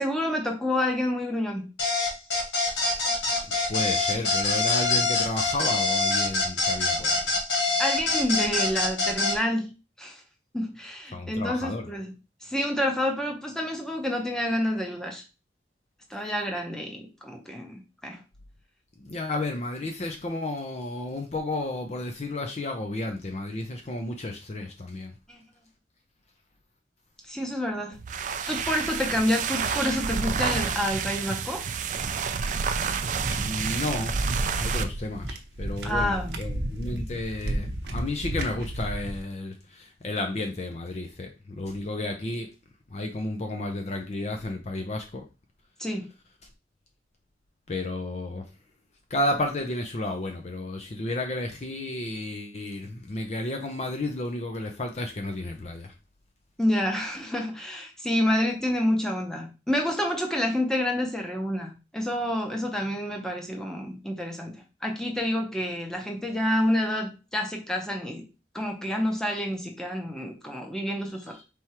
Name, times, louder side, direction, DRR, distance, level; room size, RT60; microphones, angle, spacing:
voice 1, 0.0-1.7 7.8-9.7 10.0-10.1 10.5-12.1 12.4-15.2 16.1-18.2 25.3-25.4 27.3-28.0 28.5-31.6 35.8-36.4 45.8-46.1 56.6-64.6 64.8-68.2 68.5-71.3, left 1 dB, 5° left, 0.8 m, -28 dB
sound 1, 1.8-9.4, left 3 dB, 85° left, 1.5 m, -25 dB
voice 2, 3.7-7.2 11.1-11.8 19.0-25.1 33.3-34.1 34.6-41.3 41.6-42.5 42.9-45.2 47.7-48.4 49.1-55.9, left 2 dB, 40° left, 0.5 m, -32 dB
sound 2, 27.9-34.9, right 6 dB, 45° right, 0.3 m, -29 dB
sound 3, 33.1-39.2, right 1 dB, 75° right, 0.8 m, -32 dB
4.4 x 3.5 x 2.9 m
head